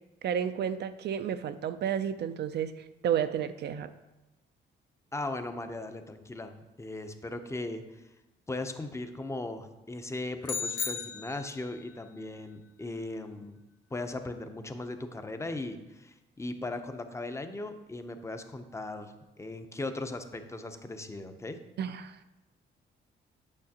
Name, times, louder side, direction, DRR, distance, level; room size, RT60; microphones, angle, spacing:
voice 1, 0.2-3.9 21.8-22.3, right 9 dB, 60° right, 11 dB, 0.4 m, -31 dB
voice 2, 5.1-7.8 8.5-13.6 13.9-21.6, left 2 dB, 15° left, 7 dB, 0.6 m, -38 dB
sound 1, 10.4-11.8, left 6 dB, 70° left, 1.0 m, -35 dB
8.8 x 5.6 x 2.8 m, 1.0 s
cardioid pair, 90°, 20 cm